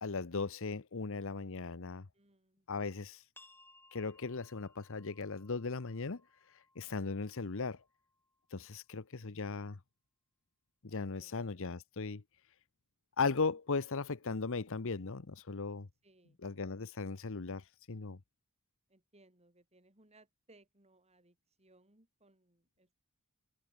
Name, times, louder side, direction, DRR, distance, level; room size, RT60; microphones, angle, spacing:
voice 1, 0.0-2.0 2.7-3.2 3.9-6.2 6.8-7.8 8.5-9.8 10.8-12.2 13.2-15.9 16.4-18.2, left 4 dB, 65° left, 0.9 m, -37 dB
voice 2, 2.1-2.7 10.9-11.5 16.0-16.4 18.9-22.9, right 2 dB, 30° right, 6.7 m, -66 dB
sound 1, 3.3-8.7, left 2 dB, 10° left, 3.4 m, -65 dB
head